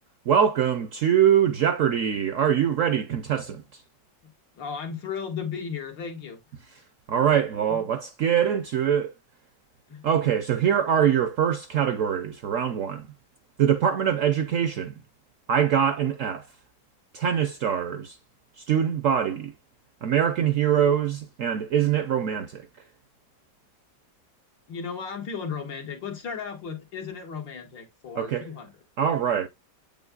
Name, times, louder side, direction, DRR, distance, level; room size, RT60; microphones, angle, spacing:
voice 1, 0.3-3.6 7.1-9.1 10.0-13.1 13.6-15.0 15.5-16.5 17.1-18.2 18.6-19.5 20.0-22.7 28.2-28.5 29.0-29.5, right 9 dB, 70° right, 0.7 m, -23 dB
voice 2, 4.2-6.4 7.7-7.9 9.9-10.0 24.7-28.7, left 6 dB, 90° left, 2.3 m, -35 dB
8.2 x 5.3 x 2.2 m
omnidirectional pair, 1.9 m